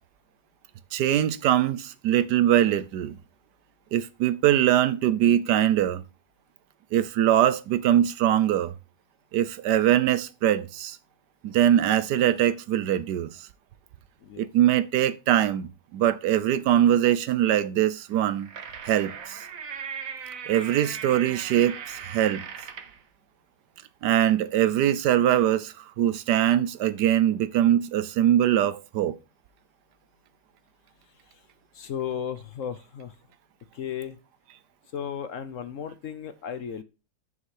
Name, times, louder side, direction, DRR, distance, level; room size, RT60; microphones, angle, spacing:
voice 1, 0.9-3.2 3.9-6.0 6.9-8.7 9.3-11.0 11.4-13.3 14.4-18.5 18.9-19.4 20.5-22.4 24.0-29.2, right 11 dB, 80° right, 1.3 m, -22 dB
voice 2, 14.2-14.5 31.0-31.5 31.7-33.2 33.7-34.2 34.9-36.8, left 8 dB, 60° left, 0.9 m, -35 dB
sound 1, 18.1-23.0, right 7 dB, 55° right, 1.3 m, -38 dB
9.7 x 5.6 x 4.7 m
omnidirectional pair, 1.8 m